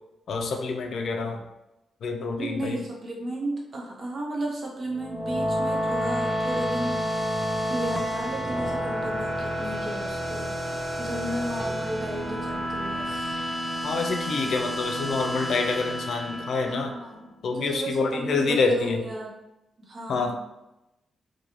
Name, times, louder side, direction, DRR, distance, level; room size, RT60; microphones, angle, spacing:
voice 1, 0.3-1.5 2.0-2.8 13.8-16.9 17.4-19.0 20.1-20.3, left 4 dB, 70° left, 4 dB, 0.4 m, -27 dB
voice 2, 2.4-7.3 7.7-10.5 11.0-13.4 16.6-19.3 19.8-20.3, right 1 dB, 45° right, -2 dB, 0.7 m, -34 dB
sound 1, 4.9-17.3, equal, 5° right, 0.4 m, -30 dB
2.5 x 2.2 x 2.9 m, 0.92 s
cardioid pair, 110°, 0 cm